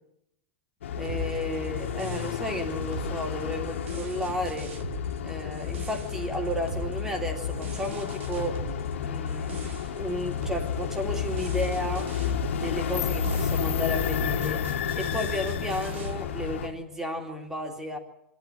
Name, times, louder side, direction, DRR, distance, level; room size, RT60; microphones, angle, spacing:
sound 1, 0.8-16.7, left 7 dB, 90° left, 2.1 m, -31 dB
voice 1, 1.0-4.7 5.2-8.6 9.0-12.1 12.5-14.6 15.0-18.0, equal, 5° right, 4 dB, 2.7 m, -33 dB
sound 2, 1.0-16.1, right 5 dB, 80° right, 3.4 m, -42 dB
24.5 x 13.0 x 9.2 m, 0.82 s
supercardioid pair, 155°, 6 cm